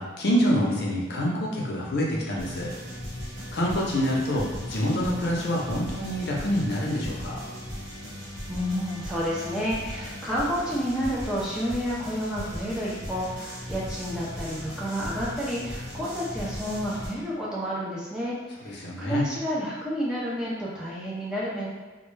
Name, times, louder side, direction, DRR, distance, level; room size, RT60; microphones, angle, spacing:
voice 1, 0.0-2.7 3.5-7.4 18.6-19.3, equal, 55° left, -3 dB, 0.6 m, -26 dB
sound 1, 2.4-17.1, equal, 65° right, 1.0 m, -38 dB
voice 2, 8.5-18.4 18.6-21.7, equal, 5° right, -7 dB, 0.4 m, -30 dB
2.2 x 2.1 x 3.1 m, 1.3 s
head